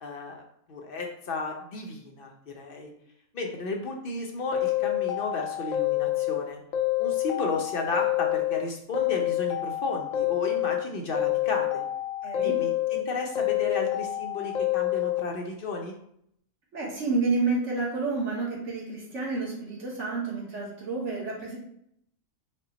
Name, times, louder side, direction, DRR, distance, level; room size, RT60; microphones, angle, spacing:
voice 1, 0.0-2.9 3.3-6.6 7.0-11.8 12.4-15.9, left 3 dB, 50° left, 2 dB, 0.7 m, -33 dB
sound 1, 4.5-6.4 6.7-8.6 8.9-10.8 11.1-13.0 13.4-15.2, left 15 dB, 75° left, 1.0 m, -27 dB
voice 2, 12.2-12.6 16.7-21.6, right 3 dB, 55° right, -4 dB, 1.5 m, -29 dB
5.3 x 2.2 x 3.9 m, 0.71 s
omnidirectional pair, 1.5 m